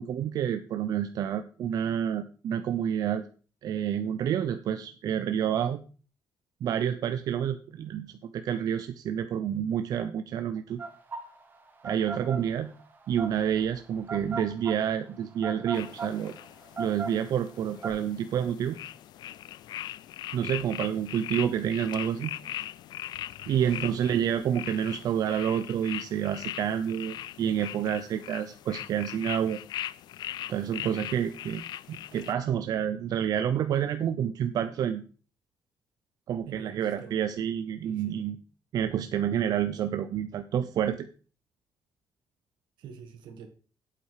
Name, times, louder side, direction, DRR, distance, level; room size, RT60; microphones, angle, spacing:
voice 1, 0.0-3.2 3.6-5.8 6.6-10.8 11.8-12.7 13.1-16.3 16.8-18.8 20.3-22.3 23.5-29.6 30.5-31.6 31.9-35.0 36.3-38.4 38.7-41.1, right 9 dB, 55° right, 9 dB, 0.6 m, -29 dB
sound 1, 10.8-17.9, right 4 dB, 25° right, 1.7 m, -38 dB
sound 2, 15.7-32.3, left 12 dB, 70° left, 0.4 m, -40 dB
voice 2, 36.5-37.2 37.8-38.3 42.8-43.5, right 7 dB, 85° right, 6 dB, 2.1 m, -46 dB
8.5 x 7.8 x 4.9 m, 0.38 s
cardioid pair, 165°, 8 cm